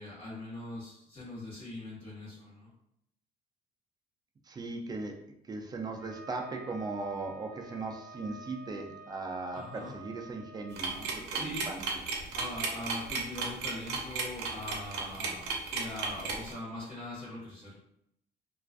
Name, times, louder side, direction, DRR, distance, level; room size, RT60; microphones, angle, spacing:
voice 1, 0.0-2.7 9.5-10.0 11.3-11.7 12.3-17.7, left 1 dB, 30° left, -10 dB, 1.0 m, -41 dB
voice 2, 4.5-5.2 5.5-11.9 15.2-15.3, right 3 dB, 25° right, 3 dB, 0.3 m, -38 dB
Wind instrument woodwind instrument, 6.0-11.1, right 1 dB, 5° left, 1.2 m, -50 dB
sound 1, 10.8-16.5, right 4 dB, 80° right, 0.5 m, -34 dB
2.4 x 2.3 x 2.3 m, 0.74 s
cardioid pair, 110°, 17 cm